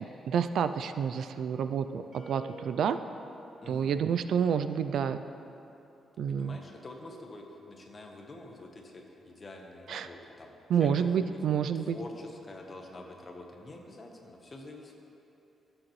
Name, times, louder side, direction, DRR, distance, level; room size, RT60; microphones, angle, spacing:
voice 1, 0.3-3.0 3.7-5.2 6.2-6.6 9.9-10.1 10.7-12.0, right 7 dB, 70° right, 10 dB, 0.3 m, -29 dB
sound 1, 2.1-5.0, right 3 dB, 40° right, 1.7 m, -52 dB
voice 2, 3.6-4.1 6.2-10.5 10.8-11.4 11.7-14.9, left 2 dB, 30° left, 1 dB, 1.0 m, -46 dB
15.0 x 7.8 x 3.1 m, 2.9 s
cardioid pair, 145°, 0 cm